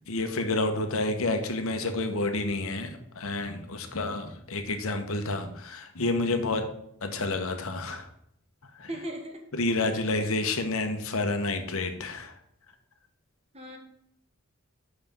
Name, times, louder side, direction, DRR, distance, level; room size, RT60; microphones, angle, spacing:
voice 1, 0.0-6.6 7.0-8.1 8.7-8.9 9.5-12.4, left 2 dB, 70° left, 6 dB, 1.1 m, -29 dB
voice 2, 8.9-9.4 10.2-10.4 13.5-13.8, right 1 dB, 30° right, 3 dB, 1.3 m, -38 dB
6.0 x 5.8 x 6.8 m, 0.73 s
head